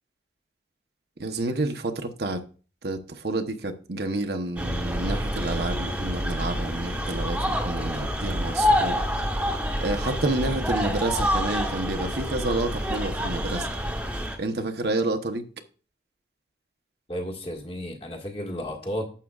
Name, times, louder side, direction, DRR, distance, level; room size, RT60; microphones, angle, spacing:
voice 1, 1.2-2.4 2.8-9.0 9.8-13.7 14.4-15.4, right 2 dB, 65° right, 1.0 m, -29 dB
sound 1, 4.6-14.4, equal, 5° right, 1.1 m, -27 dB
voice 2, 17.1-19.1, equal, 30° left, 1.7 m, -33 dB
11.5 x 7.6 x 2.4 m
head